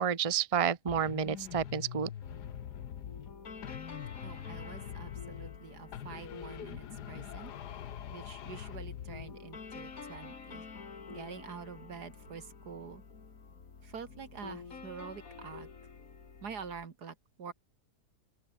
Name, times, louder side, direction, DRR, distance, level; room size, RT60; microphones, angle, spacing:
voice 1, 0.0-2.1, right 8 dB, 25° right, 0.9 m, -30 dB
sound 1, 0.9-3.3 3.6-5.6 5.9-9.4, left 10 dB, 85° left, 1.6 m, -44 dB
sound 2, 2.2-16.8, left 5 dB, 60° left, 2.6 m, -49 dB
voice 2, 4.2-7.5 8.1-10.6 11.1-13.0 13.8-15.7 16.4-17.5, right 6 dB, 80° right, 2.5 m, -46 dB
open air
omnidirectional pair, 1.7 m